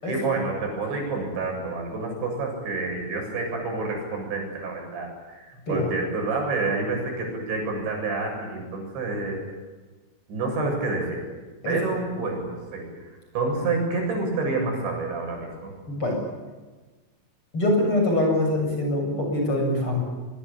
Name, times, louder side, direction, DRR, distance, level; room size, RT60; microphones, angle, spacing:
voice 1, 0.1-9.4 10.3-11.4 11.7-15.7, right 3 dB, 65° right, 1 dB, 9.6 m, -28 dB
voice 2, 15.9-16.2 17.5-20.0, left 1 dB, 25° left, 1 dB, 8.3 m, -24 dB
25.5 x 23.0 x 8.7 m, 1.3 s
omnidirectional pair, 5.6 m